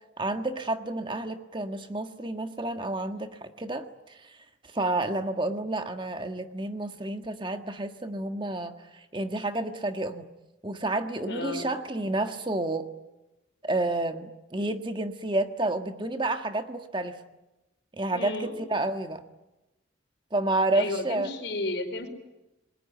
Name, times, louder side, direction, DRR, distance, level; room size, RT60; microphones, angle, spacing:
voice 1, 0.2-4.4 4.6-10.3 10.6-12.9 13.6-17.2 17.9-19.2 20.3-21.3, right 2 dB, 25° right, 7 dB, 1.5 m, -30 dB
voice 2, 11.2-11.7 18.1-18.6 20.7-22.1, left 2 dB, 65° left, 7 dB, 4.6 m, -33 dB
28.5 x 21.5 x 9.2 m, 0.98 s
head